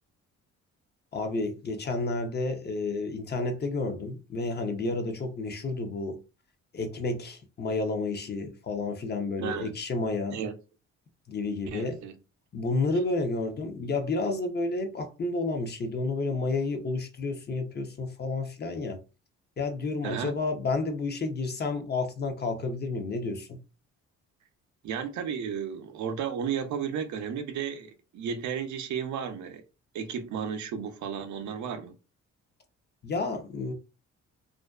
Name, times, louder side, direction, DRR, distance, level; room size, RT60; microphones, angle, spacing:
voice 1, 1.1-6.2 6.7-10.4 11.3-12.0 12.5-19.0 19.6-23.6 33.0-33.7, left 3 dB, 35° left, 0.5 m, -30 dB
voice 2, 9.4-9.7 10.3-10.5 11.7-12.2 20.0-20.3 24.8-29.6 29.9-31.9, right 7 dB, 70° right, 0.5 m, -33 dB
2.5 x 2.2 x 2.3 m
cardioid pair, 90°, 30 cm